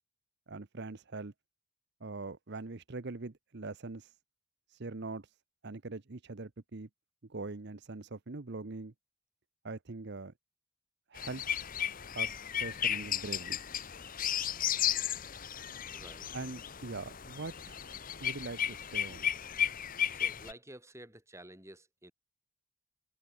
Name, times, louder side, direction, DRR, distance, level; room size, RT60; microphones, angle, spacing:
voice 1, 0.5-1.3 2.0-4.1 4.7-5.3 5.6-6.9 7.3-8.9 9.6-10.3 11.1-11.6 12.1-13.6 16.3-17.8 18.2-19.3, right 3 dB, 50° right, 0.8 m, -42 dB
sound 1, 11.2-20.5, left 9 dB, 40° left, 1.0 m, -34 dB
voice 2, 15.9-16.3 19.8-22.1, right 1 dB, 15° right, 5.7 m, -52 dB
head